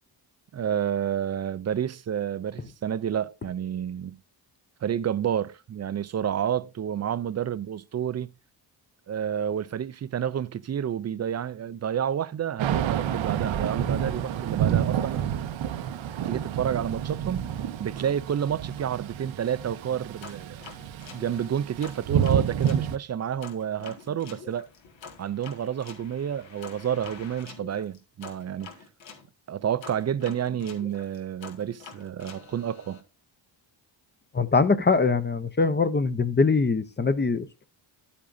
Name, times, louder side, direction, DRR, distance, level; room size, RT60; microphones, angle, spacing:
voice 1, 0.5-4.2 4.8-8.3 9.1-15.3 16.2-20.6 21.1-24.7 25.2-28.7 29.5-33.0, right 9 dB, 40° right, 0.4 m, -30 dB
Thunder / Rain, 12.6-23.0, right 9 dB, 85° right, 0.8 m, -29 dB
sound 1, 20.2-22.9 23.4-29.3 29.8-33.0, left 5 dB, 75° left, 1.8 m, -46 dB
voice 2, 34.3-37.7, left 4 dB, 25° left, 0.6 m, -23 dB
10.5 x 8.5 x 2.6 m
cardioid pair, 105°, 46 cm